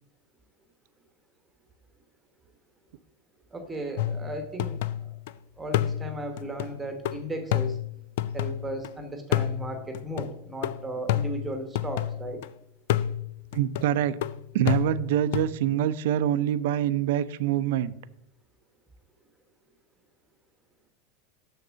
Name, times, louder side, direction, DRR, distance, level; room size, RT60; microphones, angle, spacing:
voice 1, 3.5-5.1 5.6-7.8 8.3-12.5, right 1 dB, 10° right, 1.0 m, -36 dB
sound 1, 4.0-5.3 5.7-8.9 9.3-12.5 12.9-15.5, left 11 dB, 70° left, 0.4 m, -30 dB
voice 2, 13.5-14.2 14.5-17.9, right 11 dB, 70° right, 0.5 m, -25 dB
6.7 x 6.6 x 6.2 m
supercardioid pair, 150°, 0 cm